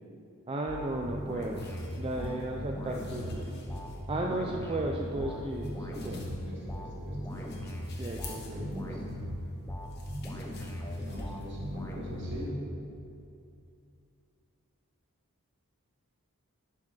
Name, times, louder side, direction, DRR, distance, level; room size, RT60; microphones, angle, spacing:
voice 1, 0.5-1.6 2.0-3.5 4.1-6.2 8.0-8.6, right 2 dB, 25° right, 0 dB, 0.4 m, -34 dB
sound 1, 0.7-12.5, left 3 dB, 50° left, 1.1 m, -54 dB
sound 2, 0.7-12.9, equal, 10° left, 0.6 m, -38 dB
voice 2, 5.9-7.2 8.5-9.0 10.8-12.7, equal, 55° right, -5 dB, 2.1 m, -42 dB
10.5 x 5.0 x 4.0 m, 2.5 s
head